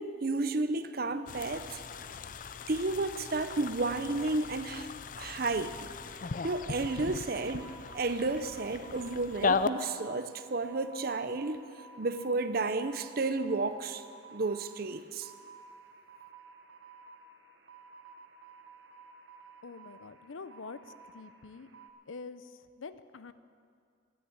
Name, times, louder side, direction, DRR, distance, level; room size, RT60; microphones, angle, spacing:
voice 1, 0.0-1.8 2.7-4.9 5.2-5.9 6.4-11.6 12.0-14.0 14.3-15.3, right 3 dB, 50° right, 11 dB, 0.7 m, -32 dB
sound 1, 1.3-9.7, left 4 dB, 45° left, 0.4 m, -37 dB
sound 2, 6.3-21.9, right 4 dB, 70° right, 1.2 m, -53 dB
voice 2, 19.6-20.8 21.1-21.7 22.1-23.3, left 4 dB, 90° left, 13 dB, 0.7 m, -45 dB
12.5 x 9.8 x 9.5 m, 2.2 s
head